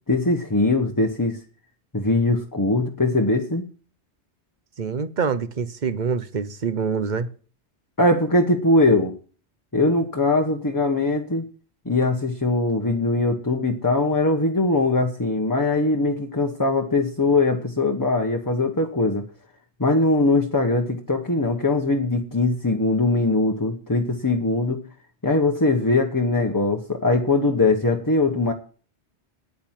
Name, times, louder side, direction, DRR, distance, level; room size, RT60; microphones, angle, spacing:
voice 1, 0.1-1.4 1.9-3.6 8.0-9.1 9.7-11.5 11.8-19.2 19.8-24.8 25.2-28.5, left 2 dB, 20° left, 3 dB, 1.1 m, -21 dB
voice 2, 4.8-7.3, right 5 dB, 45° right, 13 dB, 0.9 m, -25 dB
9.5 x 9.2 x 7.4 m, 0.40 s
omnidirectional pair, 1.2 m